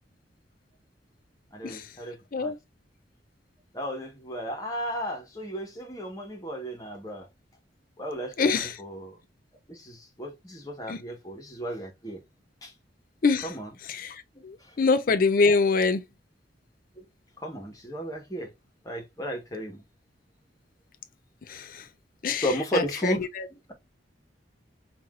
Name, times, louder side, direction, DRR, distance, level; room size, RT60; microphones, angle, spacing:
voice 1, 1.5-2.5 3.7-7.3 8.0-9.2 9.7-12.2 12.6-12.7 13.4-13.7 14.3-14.8 17.0-17.1 17.4-18.5 18.8-19.8 22.4-23.7, equal, 20° left, 1.1 m, -34 dB
voice 2, 8.4-8.7 10.9-11.0 13.2-13.5 13.9-14.2 14.4-16.0 21.5-21.8 22.2-22.5 22.7-23.5, left 4 dB, 50° left, 0.5 m, -24 dB
5.6 x 2.6 x 2.4 m
head